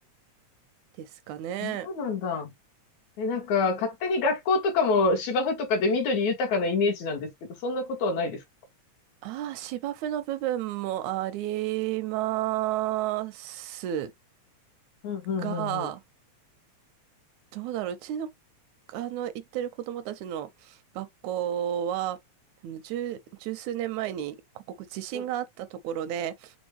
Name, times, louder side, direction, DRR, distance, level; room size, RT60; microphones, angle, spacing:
voice 1, 1.0-1.9 9.2-14.1 15.4-16.0 17.5-18.3 18.9-22.2 22.6-26.5, right 12 dB, 80° right, 1.9 m, -32 dB
voice 2, 1.6-2.5 3.2-8.4 15.0-15.9 25.1-25.2, left 3 dB, 70° left, 2.7 m, -26 dB
6.1 x 2.2 x 3.1 m
omnidirectional pair, 3.4 m